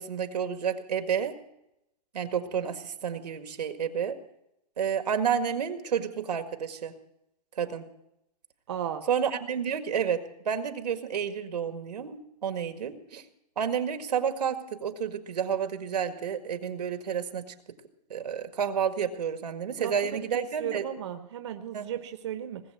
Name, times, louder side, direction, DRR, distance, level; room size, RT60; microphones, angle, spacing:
voice 1, 0.0-1.4 2.1-4.2 4.8-6.9 7.6-7.9 9.1-13.2 13.6-17.5 18.1-20.9 21.7-21.9, right 7 dB, 80° right, 8 dB, 1.9 m, -30 dB
voice 2, 8.7-9.0 19.8-22.6, right 9 dB, 45° right, 8 dB, 1.0 m, -35 dB
19.5 x 7.6 x 9.0 m, 0.83 s
hypercardioid pair, 175°, 21 cm